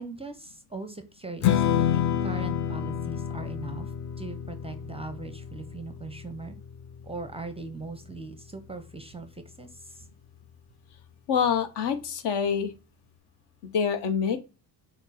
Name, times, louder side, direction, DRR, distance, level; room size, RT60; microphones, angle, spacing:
voice 1, 0.0-6.6 7.0-10.1, right 3 dB, 15° right, 8 dB, 0.5 m, -40 dB
Strum, 1.4-7.7, left 9 dB, 40° left, 0.4 m, -29 dB
voice 2, 11.3-12.7 13.6-14.4, left 7 dB, 60° left, 9 dB, 0.9 m, -26 dB
5.9 x 2.0 x 4.1 m, 0.32 s
supercardioid pair, 70°, 47 cm